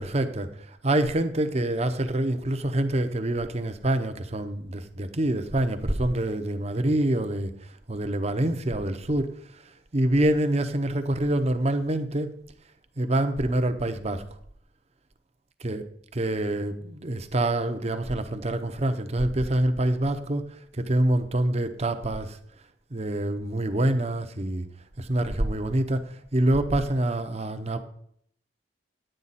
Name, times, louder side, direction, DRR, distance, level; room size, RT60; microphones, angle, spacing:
voice 1, 0.0-9.3 9.9-12.3 13.0-14.2 15.6-15.8 16.1-22.4 22.9-24.7 25.0-27.8, right 1 dB, 35° right, 9 dB, 0.8 m, -26 dB
10.5 x 9.0 x 4.2 m, 0.66 s
head